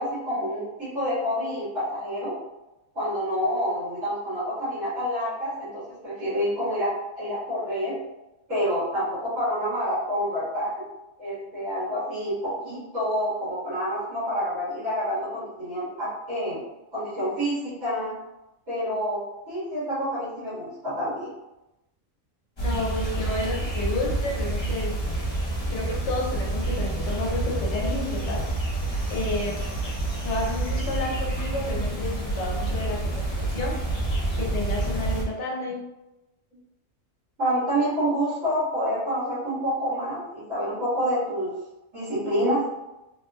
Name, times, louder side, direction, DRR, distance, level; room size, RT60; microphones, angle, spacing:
voice 1, 0.0-2.3 2.9-8.0 8.5-10.7 11.2-16.6 16.9-18.1 18.7-19.2 19.5-21.3 37.4-41.5 41.9-42.6, equal, 70° right, -12 dB, 2.0 m, -28 dB
voice 2, 22.6-24.9 25.7-28.4 29.1-29.8 30.2-33.7 34.4-35.8, left 2 dB, 65° left, -1 dB, 1.0 m, -31 dB
sound 1, 22.6-35.2, right 2 dB, 25° left, 0.7 m, -28 dB
3.6 x 2.9 x 2.3 m, 0.95 s
omnidirectional pair, 1.4 m